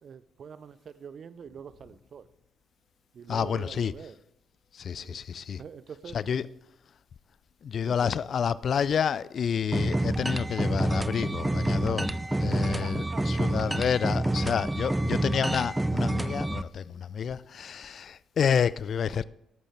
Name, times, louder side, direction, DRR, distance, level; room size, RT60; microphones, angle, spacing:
voice 1, 0.0-2.3 3.1-4.2 5.0-5.2 5.6-6.2 7.8-8.2 12.4-13.5, right 7 dB, 55° right, 0.7 m, -45 dB
voice 2, 3.3-3.9 4.7-5.6 6.1-6.5 7.6-19.2, left 7 dB, 55° left, 0.4 m, -29 dB
sound 1, 9.7-16.6, right 1 dB, 15° right, 0.6 m, -28 dB
18.5 x 9.0 x 3.6 m
hypercardioid pair, 45°, 0 cm